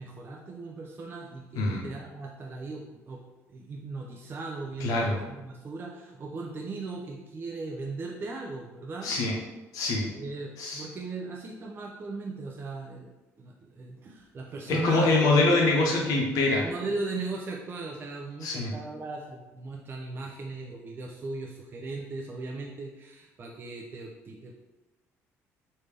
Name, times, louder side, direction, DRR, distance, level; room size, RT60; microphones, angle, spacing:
voice 1, 0.0-9.1 10.1-15.3 16.6-24.6, right 3 dB, 35° right, 0 dB, 0.4 m, -38 dB
voice 2, 4.8-5.2 9.0-9.3 9.7-10.1 10.6-10.8 14.7-16.6 18.4-18.7, left 2 dB, 75° left, -1 dB, 0.8 m, -24 dB
3.3 x 2.7 x 3.3 m, 1.1 s
cardioid pair, 90°, 6 cm